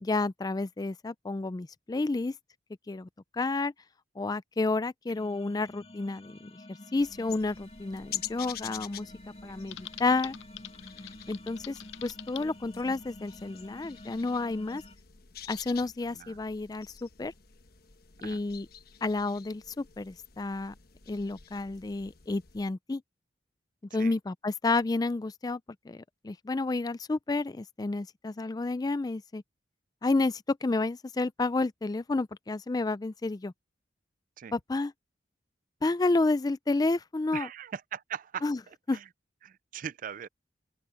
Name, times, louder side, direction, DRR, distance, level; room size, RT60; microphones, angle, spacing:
voice 1, 0.0-2.4 2.9-3.7 4.2-6.6 6.9-9.1 9.4-10.3 11.3-14.8 15.5-17.3 18.2-18.7 19.0-20.7 21.1-23.0 23.9-25.6 25.9-29.4 30.0-33.5 34.5-34.9 35.8-37.5 38.4-38.6 38.9-39.0, left 3 dB, 20° left, 0.4 m, -30 dB
sound 1, 5.1-15.0, left 1 dB, 35° left, 1.7 m, -49 dB
sound 2, 7.0-22.7, left 10 dB, 60° left, 1.2 m, -47 dB
Typing, 9.7-12.5, left 14 dB, 90° left, 0.5 m, -45 dB
voice 2, 15.8-16.4 18.2-18.4 24.0-24.1 34.4-34.6 37.3-38.5 38.9-39.1 39.4-40.3, right 8 dB, 50° right, 0.4 m, -40 dB
open air
head